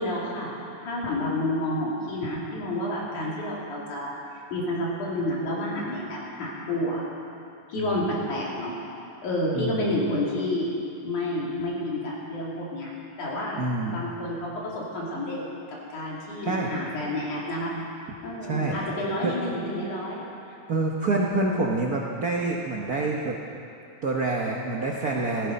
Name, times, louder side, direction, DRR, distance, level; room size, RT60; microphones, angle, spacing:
voice 1, 0.0-4.1 4.5-7.0 7.7-8.7 9.2-10.7 11.0-12.9 13.2-13.6 13.9-15.4 15.9-17.7 18.2-20.2, left 1 dB, 85° left, -5 dB, 4.4 m, -29 dB
voice 2, 7.7-8.1 9.5-9.9 13.6-14.0 16.4-16.7 18.5-18.8 19.2-19.4 20.7-23.4 24.0-25.5, right 2 dB, 75° right, -1 dB, 0.8 m, -27 dB
15.0 x 14.5 x 5.3 m, 2.8 s
omnidirectional pair, 3.4 m